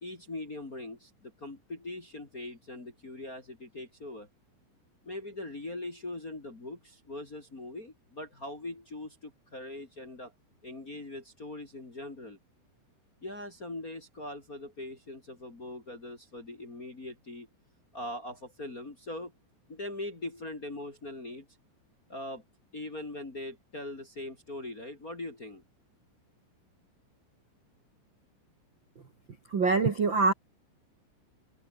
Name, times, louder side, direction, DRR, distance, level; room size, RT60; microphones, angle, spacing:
voice 1, 0.0-4.3 5.0-10.3 10.6-12.4 13.2-17.5 17.9-19.3 19.7-21.5 22.1-22.4 22.7-25.6, left 2 dB, 30° left, 1.8 m, -41 dB
voice 2, 29.5-30.3, right 4 dB, 70° right, 1.1 m, -24 dB
omnidirectional pair, 6.0 m